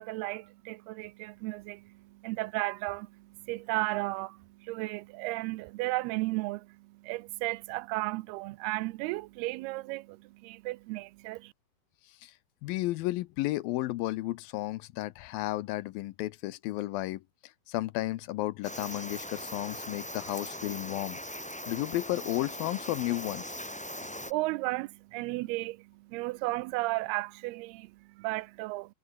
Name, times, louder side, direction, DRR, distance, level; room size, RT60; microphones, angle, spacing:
voice 1, 0.0-11.5 24.0-28.9, right 21 dB, 85° right, 2.6 m, -34 dB
voice 2, 12.0-12.4 12.6-21.2 21.7-23.6, left 17 dB, 80° left, 2.3 m, -33 dB
sound 1, 18.6-24.3, equal, 5° left, 1.4 m, -40 dB
omnidirectional pair, 4.5 m